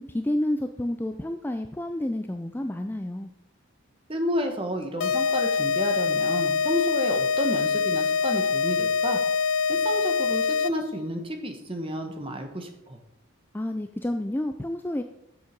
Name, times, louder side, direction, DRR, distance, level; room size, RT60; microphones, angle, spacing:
voice 1, 0.0-3.3 13.5-15.0, left 1 dB, 10° left, 7 dB, 0.3 m, -29 dB
voice 2, 4.1-9.2 9.7-13.0, equal, 25° right, 4 dB, 1.3 m, -31 dB
sound 1, 5.0-11.0, left 5 dB, 70° left, 0.5 m, -24 dB
7.5 x 7.3 x 5.2 m, 0.84 s
head